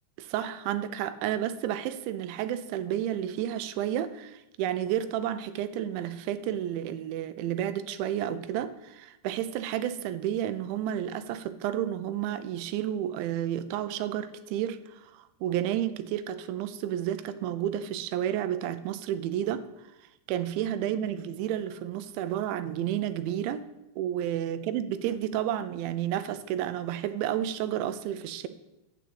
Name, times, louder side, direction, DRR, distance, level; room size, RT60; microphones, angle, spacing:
voice 1, 0.2-19.7 20.3-23.6 24.0-28.5, right 11 dB, 85° right, 11 dB, 3.0 m, -31 dB
9.2 x 8.1 x 7.9 m, 0.94 s
omnidirectional pair, 5.3 m